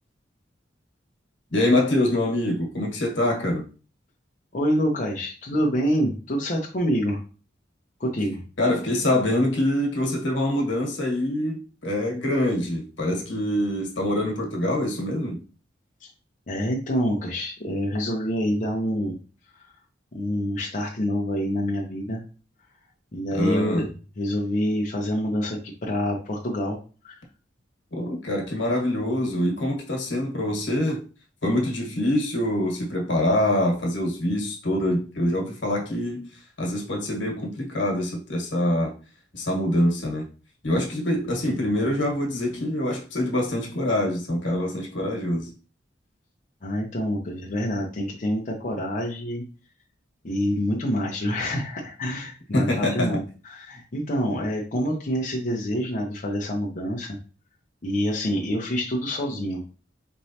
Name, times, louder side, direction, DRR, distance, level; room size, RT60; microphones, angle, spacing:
voice 1, 1.5-3.6 8.6-15.4 23.3-23.9 27.9-31.0 31.4-36.3 36.6-38.9 39.3-40.2 40.6-45.5 52.5-53.1, left 1 dB, 80° left, 1.4 m, -25 dB
voice 2, 4.5-7.2 8.0-8.4 16.0-16.1 16.5-19.2 19.5-19.7 20.1-22.2 23.1-26.8 27.0-27.2 46.6-49.4 50.2-57.2 57.8-59.6, equal, 45° left, 0.7 m, -27 dB
4.5 x 3.1 x 2.8 m
head